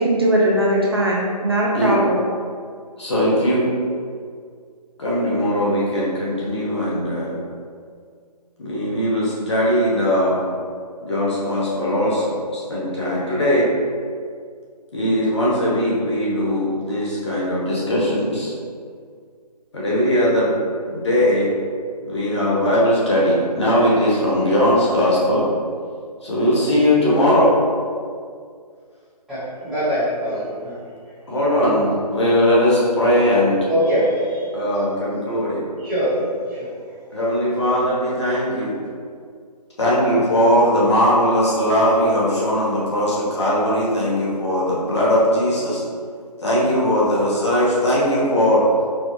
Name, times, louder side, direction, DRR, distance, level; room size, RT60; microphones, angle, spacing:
voice 1, 0.0-2.2, right 1 dB, 35° right, -4 dB, 0.4 m, -19 dB
voice 2, 3.0-3.6 5.0-7.4 8.6-10.4 11.0-13.7 14.9-18.5 19.7-20.6 20.9-21.5 22.0-25.4 26.2-27.5 31.3-33.7 34.5-35.6 37.1-38.8 39.8-45.8 46.4-48.7, equal, 45° left, -6 dB, 1.0 m, -19 dB
voice 3, 29.3-30.8 33.7-34.4 35.8-36.7, equal, ahead, -19 dB, 0.8 m, -23 dB
4.3 x 2.4 x 3.0 m, 2.1 s
figure-of-eight pair, 155°, 21 cm